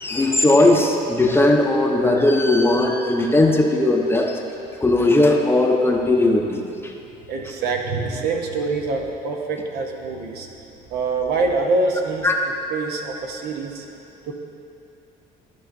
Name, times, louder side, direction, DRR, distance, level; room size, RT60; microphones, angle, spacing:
voice 1, 0.0-4.4 4.8-6.6 12.2-12.3, left 2 dB, 15° left, 1 dB, 0.6 m, -18 dB
voice 2, 7.3-10.5 10.9-12.3 12.7-13.9 14.3-14.4, right 3 dB, 70° right, 2 dB, 0.8 m, -25 dB
13.0 x 5.4 x 2.6 m, 2.8 s
cardioid pair, 110°, 17 cm